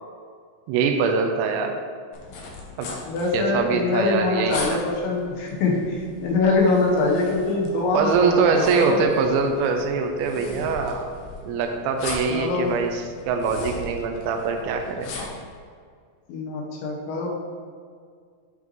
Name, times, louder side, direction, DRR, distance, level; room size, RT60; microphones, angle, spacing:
voice 1, 0.7-1.7 2.8-2.9 3.3-4.8 7.9-11.1 11.5-15.1, right 5 dB, 85° right, 4 dB, 2.7 m, -23 dB
sound 1, 2.1-15.5, left 3 dB, 90° left, 2.0 m, -39 dB
voice 2, 3.0-9.0 12.3-12.7 16.3-17.4, left 3 dB, 75° left, -2 dB, 3.1 m, -23 dB
10.5 x 5.4 x 3.1 m, 2.1 s
omnidirectional pair, 5.8 m